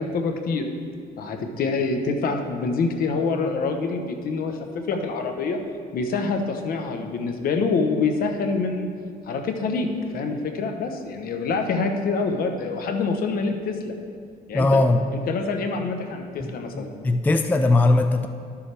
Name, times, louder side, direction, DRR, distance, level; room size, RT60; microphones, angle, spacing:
voice 1, 0.1-0.7 1.2-5.6 5.9-8.9 9.3-13.9 14.5-14.8 15.1-16.9, left 4 dB, 60° left, 5 dB, 1.0 m, -26 dB
voice 2, 14.5-15.0 16.4-16.5 16.7-18.3, left 2 dB, 10° left, 7 dB, 0.3 m, -19 dB
12.0 x 7.1 x 3.4 m, 2.2 s
cardioid pair, 110°, 17 cm